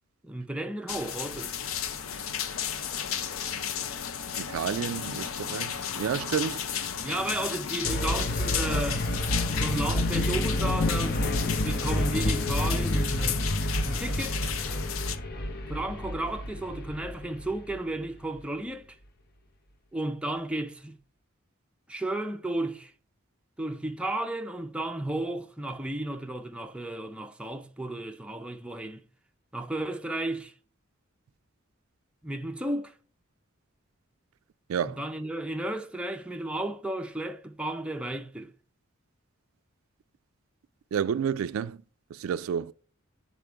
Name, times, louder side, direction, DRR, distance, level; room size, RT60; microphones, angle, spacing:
voice 1, 0.2-1.6 7.0-9.1 9.6-13.4 13.8-14.6 14.9-15.1 15.7-18.9 19.9-21.0 21.9-22.9 23.6-29.0 29.5-30.5 32.2-32.9 34.9-38.5, right 1 dB, 5° right, 0.5 m, -33 dB
sound 1, 0.9-15.2, left 8 dB, 80° left, 0.6 m, -34 dB
voice 2, 4.4-6.6 34.7-35.0 40.9-41.8 42.1-42.7, right 8 dB, 85° right, 0.3 m, -30 dB
sound 2, 7.8-17.8, left 1 dB, 50° left, 0.7 m, -29 dB
8.9 x 4.2 x 3.4 m
head